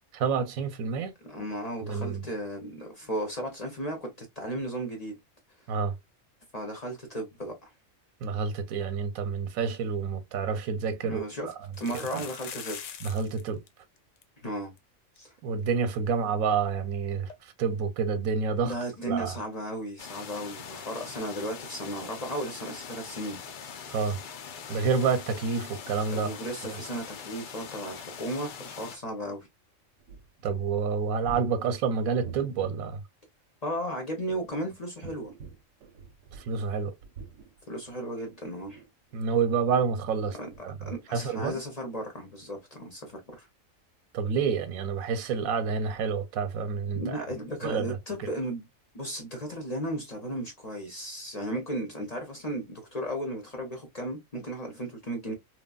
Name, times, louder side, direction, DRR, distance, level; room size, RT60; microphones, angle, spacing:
voice 1, 0.1-1.1 1.8-2.3 5.7-5.9 8.2-11.5 12.1-12.3 13.0-13.6 15.4-18.7 19.1-19.4 23.9-24.2 24.7-26.3 26.6-26.8 30.4-33.0 36.3-37.0 39.1-40.4 40.6-40.8 41.1-41.6 44.1-47.2 47.6-48.3, right 5 dB, 90° right, 1.1 m, -28 dB
voice 2, 1.2-5.2 6.5-7.5 11.0-11.5 11.8-12.8 14.4-14.7 15.2-15.3 18.6-23.4 24.7-24.8 26.1-29.5 33.6-35.3 37.7-38.8 40.4-40.5 40.9-43.5 46.9-48.6 48.9-55.3, right 1 dB, 40° left, 0.7 m, -35 dB
sound 1, 10.0-10.1 10.4-10.5 11.6-13.4 13.7-13.8 14.0-14.2 14.8-14.9 15.2-15.3 17.3-17.4, left 8 dB, 70° left, 0.9 m, -42 dB
sound 2, 20.0-29.0, left 7 dB, 90° left, 0.4 m, -42 dB
sound 3, 30.0-32.8 34.1-36.7 37.0-39.1 39.6-41.1 41.5-41.6, right 4 dB, 70° right, 0.8 m, -46 dB
3.1 x 2.3 x 2.2 m
omnidirectional pair, 1.4 m